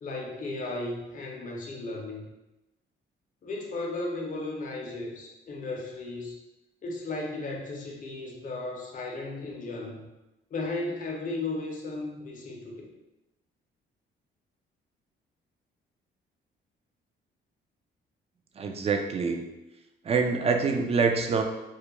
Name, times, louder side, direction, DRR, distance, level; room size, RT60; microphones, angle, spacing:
voice 1, 0.0-2.3 3.4-6.4 6.8-10.1 10.5-12.9, left 2 dB, 40° left, -1 dB, 0.6 m, -35 dB
voice 2, 18.6-19.5 20.0-21.4, right 5 dB, 30° right, 4 dB, 0.3 m, -25 dB
2.3 x 2.1 x 2.9 m, 0.98 s
cardioid pair, 90°, 20 cm